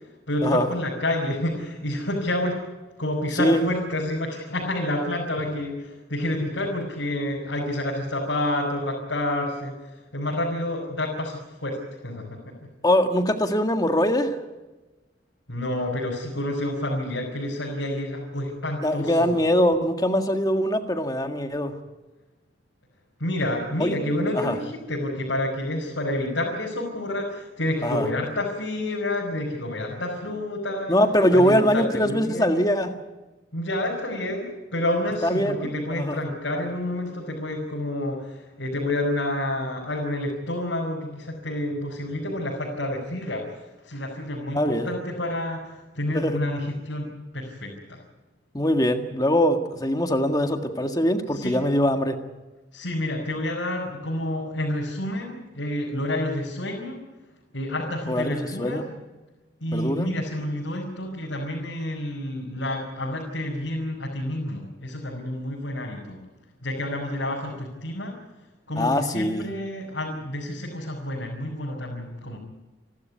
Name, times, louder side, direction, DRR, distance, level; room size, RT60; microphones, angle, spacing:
voice 1, 0.3-2.6 3.0-11.8 12.0-12.5 15.5-19.3 23.2-30.9 31.3-32.5 33.5-43.4 43.8-46.6 46.8-47.1 47.3-48.0 51.4-51.6 52.7-57.0 57.5-58.9 59.6-66.2 66.6-68.1 68.7-72.4, left 1 dB, 90° left, -3 dB, 5.3 m, -29 dB
voice 2, 12.8-14.4 18.8-21.7 23.8-24.0 24.3-24.5 27.8-28.1 30.9-32.9 35.2-36.2 44.5-44.9 46.1-46.4 48.5-52.2 58.1-58.9 59.7-60.1 68.8-69.5, equal, 20° left, 6 dB, 1.7 m, -22 dB
29.5 x 12.5 x 9.4 m, 1.2 s
head